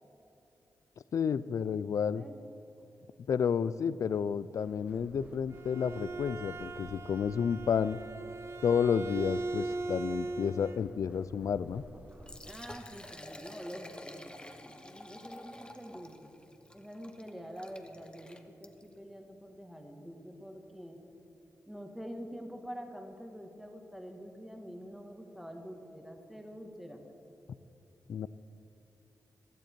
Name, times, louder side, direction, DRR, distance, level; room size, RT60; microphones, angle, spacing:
voice 1, 1.1-2.2 3.3-8.0 8.6-11.8 28.1-28.3, left 7 dB, 65° left, 17 dB, 0.4 m, -31 dB
sound 1, 4.6-12.6, equal, 25° right, 1.2 m, -55 dB
Bowed string instrument, 5.3-10.8, right 3 dB, 45° right, 0.5 m, -39 dB
Liquid, 12.1-19.0, left 1 dB, 15° left, 0.9 m, -50 dB
voice 2, 12.4-16.4 16.7-21.0 21.7-27.1, equal, 5° right, 3 dB, 1.5 m, -46 dB
15.5 x 12.0 x 4.5 m, 2.8 s
cardioid pair, 85°, 6 cm